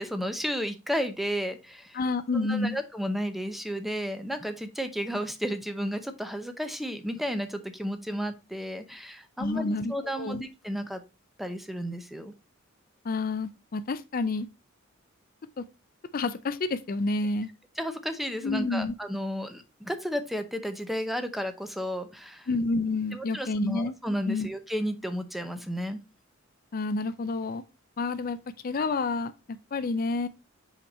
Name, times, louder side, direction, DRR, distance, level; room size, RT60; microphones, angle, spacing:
voice 1, 0.0-2.0 2.3-11.0 11.4-12.3 17.8-22.5 23.1-26.0, equal, ahead, 0.7 m, -33 dB
voice 2, 1.9-2.8 9.4-10.4 13.0-14.5 15.6-15.7 16.1-17.5 18.4-18.9 22.5-23.9 24.3-24.5 26.7-27.6 28.0-28.4 28.6-30.3, left 3 dB, 45° left, 0.4 m, -29 dB
5.2 x 5.1 x 4.1 m
head